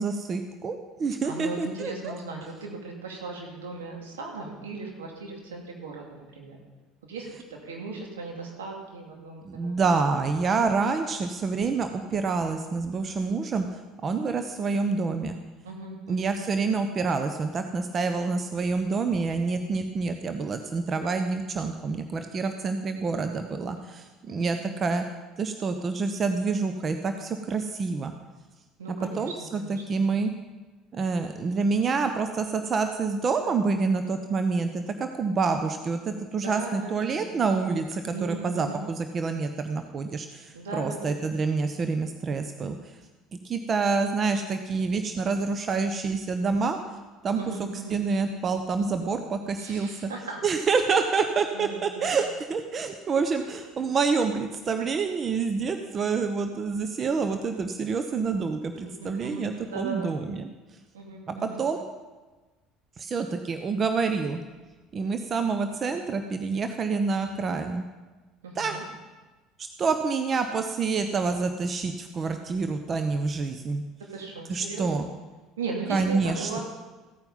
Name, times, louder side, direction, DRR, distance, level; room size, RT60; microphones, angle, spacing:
voice 1, 0.0-2.1 9.4-13.7 14.0-15.4 16.1-25.0 25.4-28.1 28.9-30.3 30.9-42.8 43.4-46.8 47.2-50.1 50.4-60.5 61.3-61.8 63.0-64.4 64.9-67.8 68.6-68.8 69.6-73.8 74.5-75.1 75.9-76.6, right 4 dB, 40° right, 7 dB, 0.9 m, -27 dB
voice 2, 1.2-6.6 7.1-9.7 15.6-16.4 24.4-24.5 28.8-30.2 36.4-37.2 38.1-38.8 40.5-41.2 47.4-48.0 49.6-50.4 51.5-52.2 58.8-60.1 60.9-61.6 68.4-68.8 74.1-75.1 75.6-76.6, right 3 dB, 80° right, 0 dB, 2.6 m, -37 dB
15.5 x 9.0 x 5.5 m, 1.2 s
hypercardioid pair, 65°, 0 cm